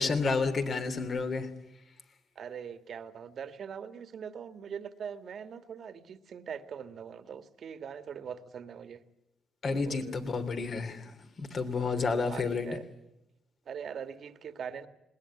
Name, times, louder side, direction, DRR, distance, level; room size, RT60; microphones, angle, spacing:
voice 1, 0.0-1.5 9.6-12.7, left 4 dB, 50° left, 8 dB, 3.1 m, -30 dB
voice 2, 2.3-9.0 9.7-10.2 11.7-12.8 13.6-14.9, right 7 dB, 60° right, 11 dB, 1.6 m, -42 dB
20.5 x 19.5 x 9.7 m, 0.90 s
cardioid pair, 90°, 0 cm